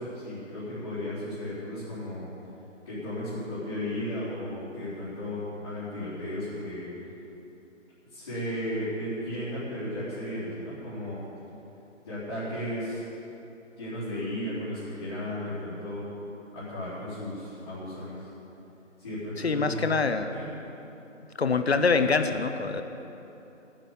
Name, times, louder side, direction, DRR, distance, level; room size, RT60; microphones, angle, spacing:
voice 1, 0.0-2.3 2.9-6.9 8.1-11.2 12.0-13.0 13.8-16.1 16.5-18.3 19.0-19.9 20.3-20.5, left 1 dB, 25° left, -14 dB, 3.8 m, -34 dB
voice 2, 19.4-20.3 21.4-22.8, left 4 dB, 55° left, 8 dB, 0.9 m, -25 dB
13.5 x 9.1 x 7.2 m, 3.0 s
hypercardioid pair, 175°, 39 cm